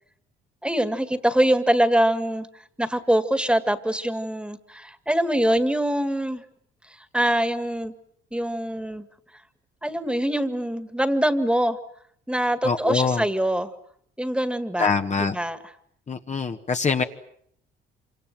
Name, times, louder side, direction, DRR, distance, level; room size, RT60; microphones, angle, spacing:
voice 1, 0.6-2.5 2.8-6.4 6.9-7.9 8.3-9.1 9.8-11.8 12.3-13.7 14.2-14.9 15.2-15.6, right 1 dB, 5° right, 11 dB, 2.0 m, -24 dB
voice 2, 12.6-13.2 14.8-15.3 16.1-17.0, left 5 dB, 35° left, 5 dB, 1.5 m, -24 dB
27.0 x 26.0 x 7.7 m, 0.68 s
cardioid pair, 90°, 20 cm